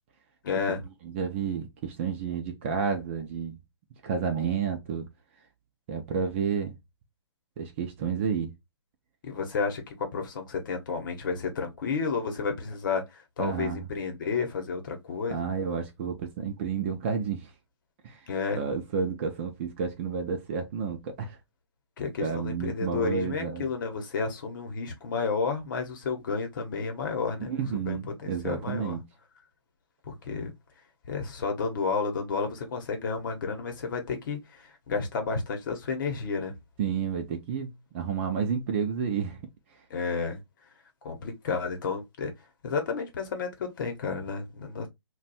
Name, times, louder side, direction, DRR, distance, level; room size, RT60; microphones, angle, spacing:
voice 1, 0.4-0.8 9.2-15.4 18.3-18.6 22.0-27.6 27.9-29.0 30.0-30.5 31.1-36.5 39.9-40.4 41.0-42.3 42.6-44.9, left 5 dB, 45° left, 0.9 m, -31 dB
voice 2, 1.0-3.6 4.0-5.1 5.9-6.8 7.6-8.5 13.4-13.8 15.3-17.5 18.0-18.2 18.5-21.4 22.2-23.7 27.4-29.0 36.8-39.4, right 6 dB, 25° right, 0.5 m, -30 dB
2.5 x 2.3 x 4.0 m
hypercardioid pair, 155°, 15 cm